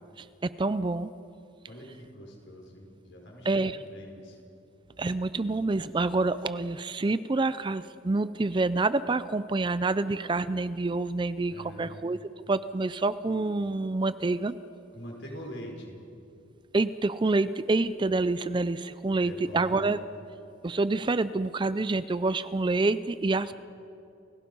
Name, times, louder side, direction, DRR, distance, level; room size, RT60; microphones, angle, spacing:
voice 1, 0.2-1.1 3.4-3.8 5.0-12.2 12.5-14.6 16.7-20.0 20.6-23.5, right 3 dB, 25° right, 15 dB, 0.4 m, -27 dB
voice 2, 1.7-4.4 11.5-11.9 14.9-16.0 19.2-19.9, equal, 65° left, 0 dB, 4.9 m, -44 dB
30.0 x 16.5 x 5.4 m, 2.7 s
head